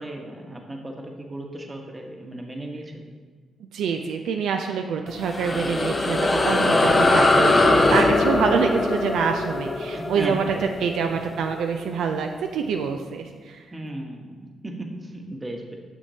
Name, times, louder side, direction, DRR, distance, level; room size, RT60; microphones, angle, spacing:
voice 1, 0.0-3.0 9.9-10.9 13.7-14.4 14.6-15.8, right 1 dB, 25° right, 2 dB, 1.1 m, -35 dB
voice 2, 3.7-10.4 10.8-13.6, right 6 dB, 75° right, 4 dB, 0.3 m, -26 dB
sound 1, 5.1-11.9, left 2 dB, 35° left, 0.6 m, -21 dB
6.3 x 6.1 x 2.7 m, 1.4 s
supercardioid pair, 50°, 0 cm